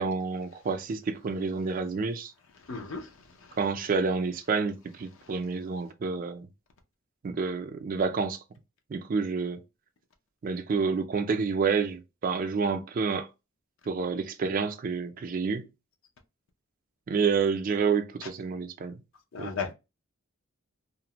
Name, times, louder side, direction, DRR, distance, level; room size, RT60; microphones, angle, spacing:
voice 1, 0.0-2.3 3.6-6.5 7.2-8.4 8.9-9.6 10.4-13.3 13.9-15.7 17.1-19.0 19.4-19.5, right 5 dB, 40° right, 0.3 m, -29 dB
voice 2, 2.7-3.0 19.3-19.7, left 5 dB, 65° left, 0.5 m, -33 dB
2.4 x 2.0 x 2.8 m
head